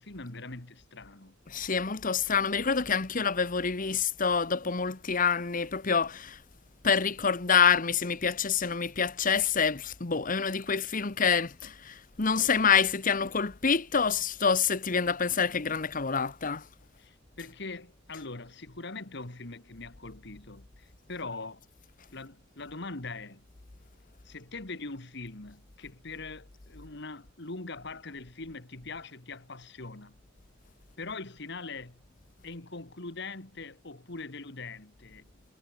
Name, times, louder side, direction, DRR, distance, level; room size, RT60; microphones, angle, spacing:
voice 1, 0.0-1.4 17.0-21.7 22.1-23.5 24.2-30.2 31.0-32.0 32.4-35.3, left 3 dB, 65° left, 2.2 m, -42 dB
voice 2, 1.5-6.4 6.8-16.6, left 6 dB, 45° left, 1.2 m, -27 dB
head